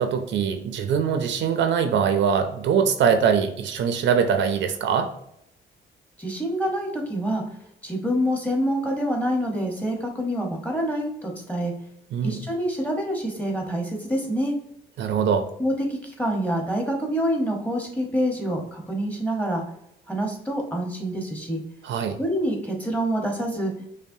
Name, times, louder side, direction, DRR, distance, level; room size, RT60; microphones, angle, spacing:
voice 1, 0.0-5.1 12.1-12.4 15.0-15.5 21.8-22.2, right 7 dB, 65° right, 7 dB, 0.5 m, -22 dB
voice 2, 6.2-7.4 7.8-11.7 12.2-14.5 15.6-19.6 20.1-21.6 22.2-23.7, equal, 5° left, 0 dB, 1.0 m, -26 dB
5.3 x 2.1 x 2.6 m, 0.77 s
cardioid pair, 90°, 20 cm